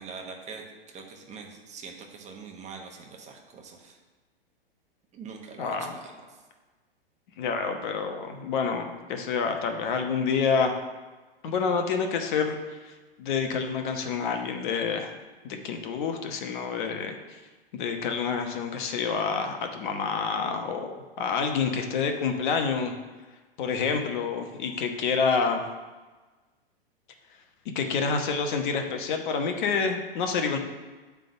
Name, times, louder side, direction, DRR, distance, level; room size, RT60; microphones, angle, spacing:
voice 1, 0.0-4.0 5.1-6.4, right 5 dB, 20° right, 2 dB, 1.1 m, -43 dB
voice 2, 5.6-5.9 7.4-10.7 11.4-12.9 13.2-15.1 15.4-17.1 17.7-22.9 23.6-25.6 27.7-30.6, left 5 dB, 50° left, 5 dB, 1.1 m, -28 dB
9.0 x 3.6 x 6.9 m, 1.3 s
hypercardioid pair, 110°, 30 cm